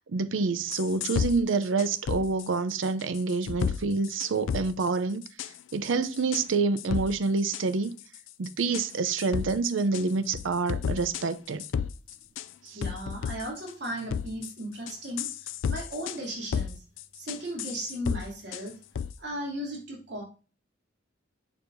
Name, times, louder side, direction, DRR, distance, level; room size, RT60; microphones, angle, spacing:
voice 1, 0.0-5.2 5.7-7.9 8.4-11.6 12.6-12.8, right 4 dB, 85° right, 0.6 m, -27 dB
sound 1, 0.7-1.3 1.8-2.5 2.8-3.8 4.0-4.9 5.2-5.5 5.8-6.4 6.8-7.1 7.5-7.6 8.0-8.5 8.7-8.9 9.2-10.0 10.3-11.2 11.6-12.4 12.8-13.7 14.1-14.5 14.9-16.2 16.5-16.7 17.0-18.2 18.5-18.7 18.9-19.1, left 7 dB, 85° left, 0.4 m, -32 dB
voice 2, 12.7-16.8 17.1-18.7 19.2-20.2, right 1 dB, 65° right, 2.8 m, -36 dB
7.0 x 6.7 x 2.6 m
head